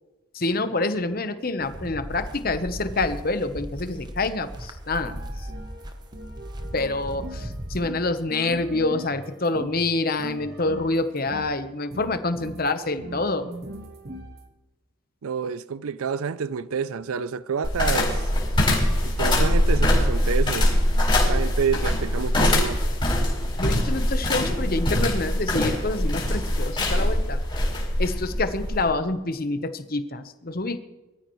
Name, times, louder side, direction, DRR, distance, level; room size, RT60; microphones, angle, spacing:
voice 1, 0.3-5.5 6.7-13.5 23.6-27.4 28.0-30.8, left 2 dB, 45° left, 1.0 m, -27 dB
sound 1, 1.6-7.9, equal, 20° right, 1.0 m, -37 dB
sound 2, 4.9-9.9 10.2-11.6 11.9-14.4, equal, 45° right, 1.4 m, -40 dB
voice 2, 15.2-18.3 19.1-20.7 21.3-22.9, right 6 dB, 85° right, 0.5 m, -28 dB
sound 3, 17.6-28.9, left 1 dB, 25° left, 4.5 m, -23 dB
21.5 x 13.5 x 3.2 m
head